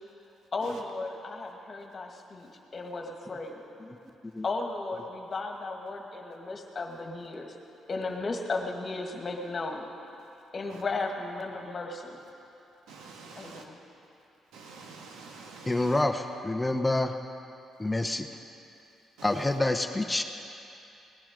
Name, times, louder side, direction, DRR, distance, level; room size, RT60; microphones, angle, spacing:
voice 1, 0.5-3.6 4.4-7.5 7.9-9.9 10.5-12.2 13.3-13.8, left 3 dB, 40° left, 2 dB, 1.8 m, -35 dB
voice 2, 12.9-13.6 14.5-16.0 19.2-19.4, right 4 dB, 90° right, 1 dB, 1.5 m, -47 dB
voice 3, 15.7-17.2 17.8-18.3 19.2-20.2, left 2 dB, 10° left, 6 dB, 0.7 m, -27 dB
18.0 x 11.0 x 5.2 m, 2.8 s
cardioid pair, 90°, 0 cm